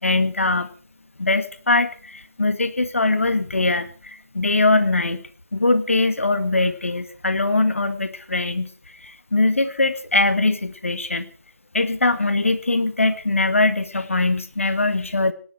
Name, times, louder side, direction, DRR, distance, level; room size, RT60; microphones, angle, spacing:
voice 1, 0.0-0.7 1.2-5.2 5.5-8.7 9.0-11.3 11.7-15.3, left 2 dB, 50° left, 10 dB, 2.0 m, -21 dB
18.0 x 10.5 x 6.4 m, 0.42 s
figure-of-eight pair, 165°, 9 cm